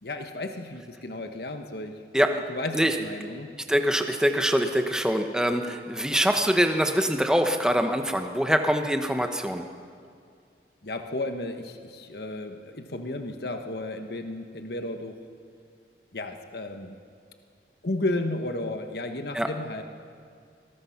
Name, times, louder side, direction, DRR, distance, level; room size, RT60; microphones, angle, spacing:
voice 1, 0.0-2.0 2.3-3.5 10.8-15.2 16.1-17.0 17.8-19.8, left 2 dB, 65° left, 6 dB, 1.2 m, -33 dB
voice 2, 3.7-9.6 19.3-19.5, equal, 5° right, 5 dB, 1.1 m, -24 dB
25.0 x 20.0 x 5.9 m, 2.3 s
head